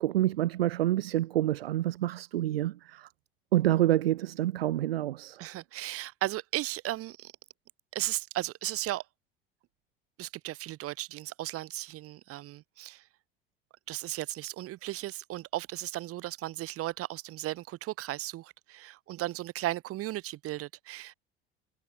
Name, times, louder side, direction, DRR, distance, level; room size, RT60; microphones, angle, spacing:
voice 1, 0.0-3.1 3.5-5.4, right 14 dB, 70° right, 1.0 m, -27 dB
voice 2, 5.4-7.3 7.9-9.0 10.2-13.0 13.9-21.1, right 16 dB, 45° right, 5.5 m, -36 dB
figure-of-eight pair, 70°, 31 cm